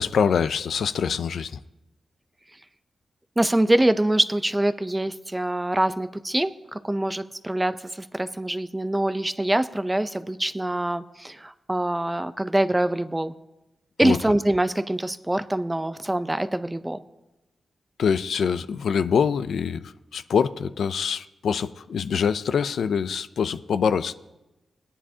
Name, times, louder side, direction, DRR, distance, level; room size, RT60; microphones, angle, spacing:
voice 1, 0.0-1.6 14.0-14.2 18.0-24.1, left 6 dB, 80° left, 0.4 m, -24 dB
voice 2, 3.4-13.3 14.0-17.0, right 1 dB, 10° right, 0.5 m, -24 dB
20.5 x 9.9 x 2.8 m
wide cardioid pair, 105°, 0 cm